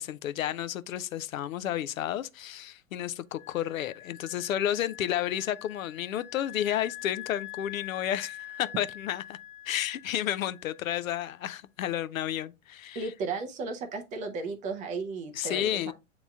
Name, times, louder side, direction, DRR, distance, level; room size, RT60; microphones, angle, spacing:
voice 1, 0.0-9.4 9.7-13.1 15.3-15.9, left 11 dB, 70° left, 0.5 m, -31 dB
Wind instrument woodwind instrument, 3.3-11.6, left 14 dB, 5° right, 0.9 m, -45 dB
voice 2, 12.9-15.9, right 4 dB, 20° right, 0.4 m, -34 dB
7.7 x 2.9 x 2.3 m
figure-of-eight pair, 100°, 42 cm